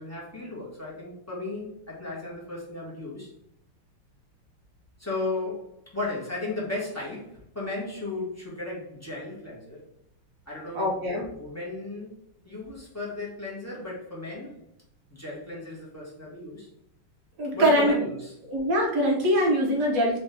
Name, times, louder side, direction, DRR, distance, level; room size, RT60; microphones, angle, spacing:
voice 1, 0.0-3.3 5.0-9.8 10.5-12.1 12.4-14.6 15.1-16.7 17.5-18.3, left 2 dB, 15° left, -6 dB, 0.6 m, -35 dB
voice 2, 10.7-11.2 17.4-17.9 18.5-20.2, equal, 60° right, -1 dB, 0.9 m, -23 dB
4.1 x 2.9 x 3.3 m, 0.75 s
omnidirectional pair, 2.4 m